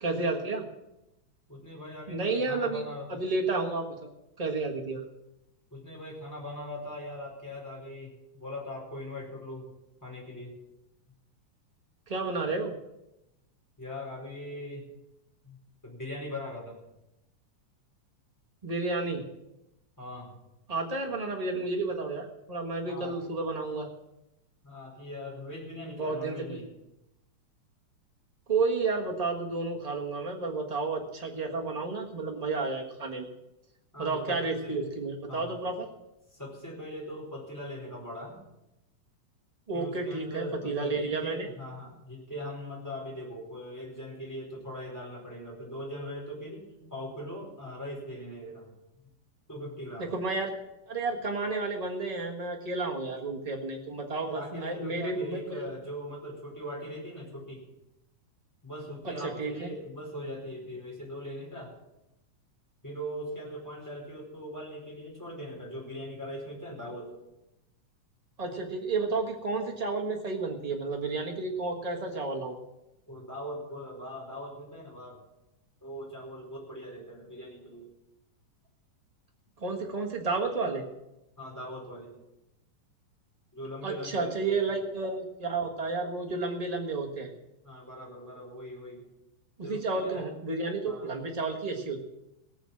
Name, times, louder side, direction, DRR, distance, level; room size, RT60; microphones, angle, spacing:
voice 1, 0.0-0.6 2.1-4.1 4.4-5.0 12.1-12.7 18.6-19.2 20.7-23.9 25.8-26.6 28.5-33.3 34.0-35.8 39.7-41.5 50.0-50.5 50.9-55.6 59.0-59.1 59.4-59.7 68.4-72.6 79.6-80.8 83.8-87.3 89.6-92.0, right 3 dB, 70° right, 0 dB, 0.3 m, -31 dB
voice 2, 1.5-3.2 5.7-9.7 10.0-10.6 13.8-14.8 15.4-15.6 15.8-16.8 20.0-20.3 22.8-23.3 24.6-26.7 33.9-34.9 35.3-35.8 36.3-38.4 39.7-48.7 49.5-50.1 54.2-57.6 58.6-61.7 62.8-67.1 73.1-75.2 75.8-77.9 81.4-82.1 83.5-84.8 87.6-89.1 89.6-90.2 90.8-91.1, equal, 5° left, -2 dB, 4.6 m, -40 dB
18.5 x 7.2 x 7.4 m, 0.92 s
omnidirectional pair, 3.6 m